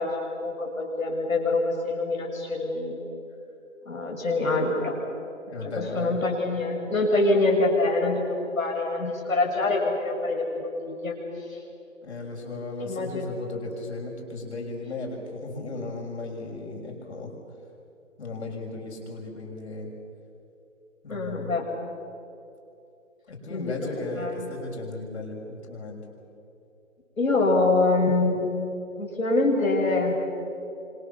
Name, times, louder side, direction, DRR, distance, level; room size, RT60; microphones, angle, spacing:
voice 1, 0.0-3.0 3.9-5.0 5.6-8.3 8.6-11.2 11.5-11.6 12.8-13.3 21.1-21.7 23.5-23.7 24.2-24.3 27.2-28.5 29.0-30.1, left 2 dB, 85° left, -2 dB, 7.9 m, -25 dB
voice 2, 5.5-6.2 12.0-17.3 18.2-19.9 21.0-21.5 23.3-26.0, left 2 dB, 55° left, 1 dB, 6.7 m, -35 dB
27.0 x 25.5 x 7.2 m, 2.7 s
hypercardioid pair, 160°, 39 cm